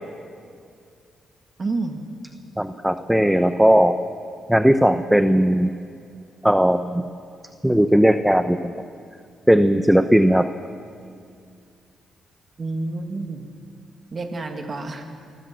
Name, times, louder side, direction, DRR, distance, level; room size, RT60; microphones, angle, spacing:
voice 1, 1.6-2.0 12.6-13.4 14.1-15.1, right 3 dB, 40° right, 5 dB, 2.3 m, -29 dB
voice 2, 2.6-4.0 4.5-5.7 6.4-7.0 7.6-8.7 9.5-10.5, equal, 5° right, 10 dB, 0.9 m, -17 dB
24.5 x 15.5 x 7.6 m, 2.3 s
cardioid pair, 75°, 0 cm